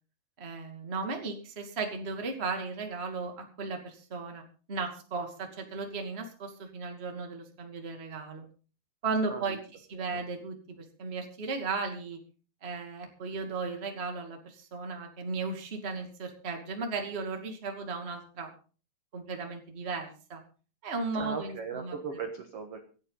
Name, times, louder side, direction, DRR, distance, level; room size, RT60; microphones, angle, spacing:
voice 1, 0.4-4.4 4.7-8.4 9.0-9.6 9.9-12.2 12.6-18.5 19.1-20.4 20.8-22.0, right 4 dB, 20° right, 3 dB, 1.8 m, -35 dB
voice 2, 9.3-9.6 10.1-10.2 21.2-22.8, right 5 dB, 55° right, 4 dB, 1.9 m, -38 dB
26.0 x 8.7 x 4.0 m, 0.38 s
omnidirectional pair, 4.8 m